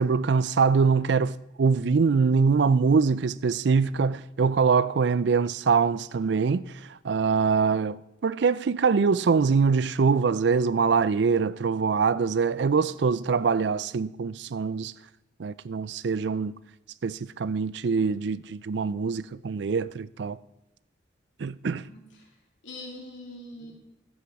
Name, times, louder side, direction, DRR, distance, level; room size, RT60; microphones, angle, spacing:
voice 1, 0.0-6.6 7.0-14.9 15.4-16.5 17.0-20.4 21.4-21.8, right 5 dB, 65° right, 0.4 m, -24 dB
voice 2, 21.6-22.3 22.6-23.7, left 1 dB, 75° left, 3.0 m, -43 dB
14.0 x 8.6 x 4.8 m
head